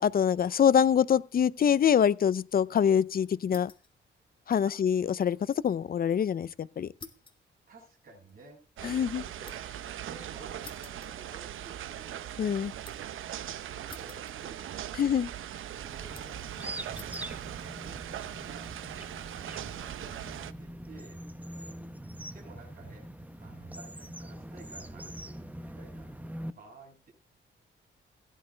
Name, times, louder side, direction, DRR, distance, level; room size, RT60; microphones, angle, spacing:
voice 1, 0.0-3.7 4.5-5.4 5.6-6.9 8.8-9.2 12.4-12.7 15.0-15.3, left 8 dB, 50° left, 0.6 m, -25 dB
sound 1, 3.4-4.0 4.3-5.8 6.1-6.2 7.0-9.8 10.6-11.8 12.1-13.2 13.9-14.8 15.0-15.6 16.1-16.5 16.9-17.3 18.0-18.4, left 4 dB, 25° left, 1.9 m, -52 dB
voice 2, 7.7-13.3 13.6-18.6 19.0-19.2 19.6-21.2 22.3-23.1 23.4-26.1 26.6-27.1, right 3 dB, 45° right, 6.7 m, -54 dB
sound 2, 8.8-20.5, right 11 dB, 90° right, 0.9 m, -40 dB
sound 3, 15.7-26.5, right 1 dB, 10° right, 0.9 m, -43 dB
16.5 x 11.0 x 3.4 m
cardioid pair, 130°, 20 cm